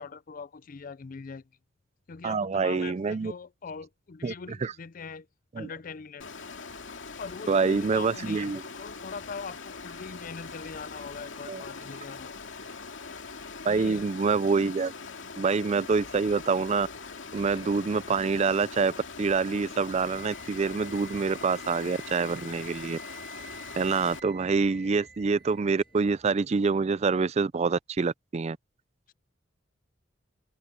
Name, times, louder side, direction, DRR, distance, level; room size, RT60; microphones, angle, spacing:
voice 1, 0.0-1.4 2.1-5.3 5.6-6.3 7.2-12.3 13.7-14.0 29.1-29.2, left 5 dB, 45° left, 0.5 m, -42 dB
voice 2, 2.2-3.3 4.2-4.3 4.6-4.7 5.6-5.7 7.5-8.6 11.5-11.6 13.6-14.9 15.4-16.9 17.3-18.9 19.2-23.0 23.8-28.6, right 4 dB, 35° right, 0.4 m, -26 dB
Water, 6.2-24.2, left 4 dB, 85° left, 2.4 m, -42 dB
sound 1, 17.2-26.4, left 1 dB, 30° left, 7.3 m, -60 dB
Wind instrument woodwind instrument, 20.0-26.0, right 2 dB, 75° right, 1.9 m, -49 dB
head